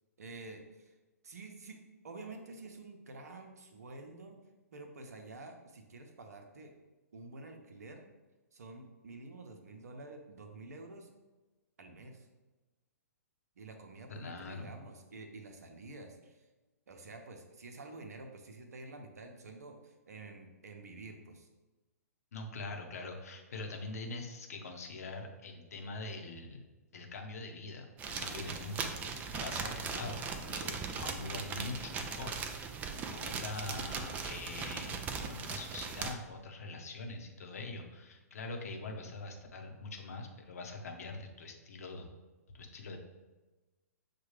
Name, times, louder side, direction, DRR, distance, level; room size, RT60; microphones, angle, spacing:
voice 1, 0.2-0.9 1.2-1.8 2.0-4.4 4.7-6.7 7.1-8.0 8.5-11.1 11.8-12.3 13.6-16.5 16.9-21.5, right 3 dB, 70° right, 4 dB, 0.7 m, -49 dB
voice 2, 14.1-14.7 22.3-26.6 26.9-29.0 29.3-32.4 33.1-42.1 42.5-43.0, left 3 dB, 65° left, 3 dB, 0.8 m, -43 dB
sound 1, 28.0-36.1, right 5 dB, 15° right, 0.3 m, -39 dB
6.4 x 2.3 x 3.1 m, 1.2 s
figure-of-eight pair, 120°, 9 cm